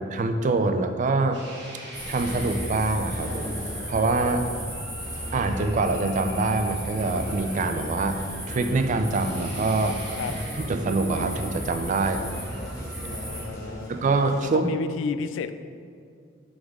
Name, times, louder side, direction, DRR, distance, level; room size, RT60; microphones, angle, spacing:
voice 1, 0.1-1.4 2.1-3.4 3.9-4.5 5.3-8.2 8.5-10.0 10.6-12.2 13.9-14.7, right 3 dB, 40° right, 7 dB, 0.4 m, -25 dB
sound 1, 1.3-13.5, right 1 dB, 65° right, 1.4 m, -44 dB
sound 2, 1.9-13.4, equal, 5° right, 1.6 m, -35 dB
sound 3, 2.1-14.4, equal, 15° left, 1.4 m, -41 dB
voice 2, 13.1-13.9 14.4-15.5, left 5 dB, 70° left, 11 dB, 0.3 m, -31 dB
7.8 x 4.0 x 3.6 m, 2.3 s
head